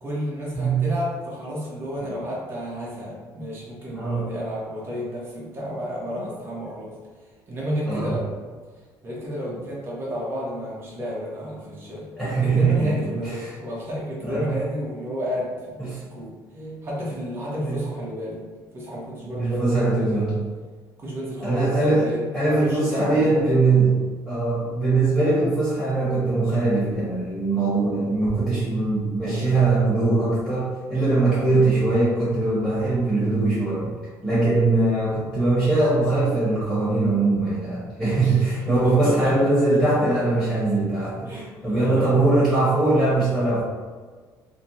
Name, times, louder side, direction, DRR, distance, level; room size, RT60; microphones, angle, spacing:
voice 1, 0.0-6.9 7.5-8.3 9.0-18.4 18.7-20.3 21.0-21.7 21.9-22.3 22.6-23.5 31.5-31.7 38.1-39.3 41.3-41.5 41.7-42.0, equal, 30° right, -6 dB, 1.0 m, -31 dB
voice 2, 0.5-0.9 3.9-4.3 7.8-8.2 12.2-12.9 13.4-13.5 14.2-14.6 15.8-16.0 16.5-16.7 17.6-17.8 19.3-20.3 21.4-22.1 22.3-24.0 24.3-33.9 34.2-43.6, right 2 dB, 5° right, -11 dB, 1.4 m, -21 dB
3.4 x 2.1 x 2.8 m, 1.5 s
cardioid pair, 140°, 8 cm